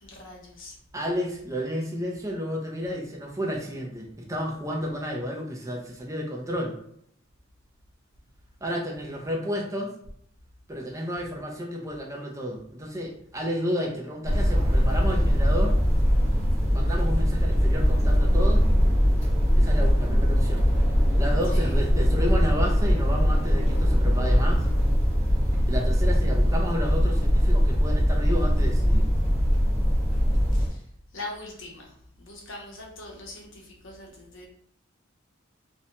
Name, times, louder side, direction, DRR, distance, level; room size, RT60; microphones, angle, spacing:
voice 1, 0.0-0.8 21.5-21.7 30.5-30.8 31.1-31.9 32.2-34.5, left 2 dB, 70° left, 0 dB, 0.7 m, -41 dB
voice 2, 0.9-6.8 8.6-9.9 10.7-15.8 16.7-18.7 19.6-20.7 21.2-24.7 25.7-29.1, equal, 15° right, 0 dB, 0.4 m, -31 dB
sound 1, 14.2-30.7, equal, 35° right, 1.1 m, -21 dB
2.7 x 2.1 x 2.7 m, 0.67 s
head